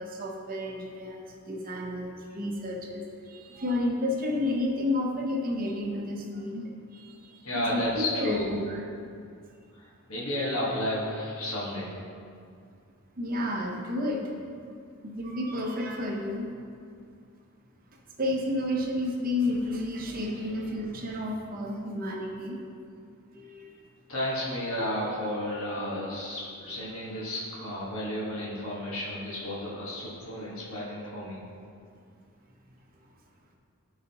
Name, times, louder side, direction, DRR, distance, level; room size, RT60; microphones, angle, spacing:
voice 1, 0.0-8.8 13.2-14.3 15.0-16.5 17.9-22.6 23.3-23.8, left 1 dB, 40° right, 0 dB, 0.8 m, -31 dB
voice 2, 7.4-8.5 9.7-11.9 20.3-20.4 24.1-31.4, left 1 dB, 75° left, -7 dB, 1.4 m, -32 dB
10.5 x 4.9 x 2.9 m, 2.3 s
head